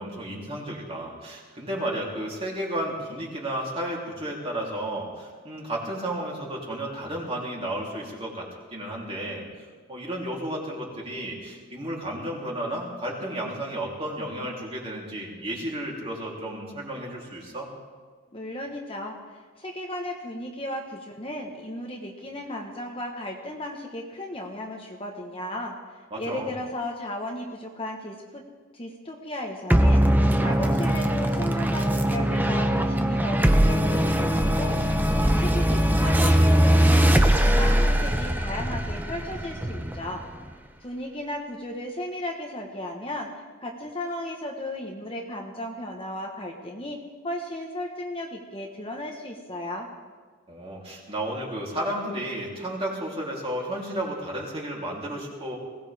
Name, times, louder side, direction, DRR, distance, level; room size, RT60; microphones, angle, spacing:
voice 1, 0.0-9.4 9.9-17.7 26.1-26.5 50.5-55.6, right 1 dB, 30° right, -3 dB, 3.4 m, -33 dB
voice 2, 18.3-28.4 28.7-40.2 40.8-43.3 43.6-47.0 47.2-49.9, left 1 dB, 25° left, 1 dB, 1.3 m, -35 dB
sound 1, 29.7-40.5, equal, 10° right, 0.8 m, -21 dB
21.0 x 17.5 x 3.6 m, 1.5 s
head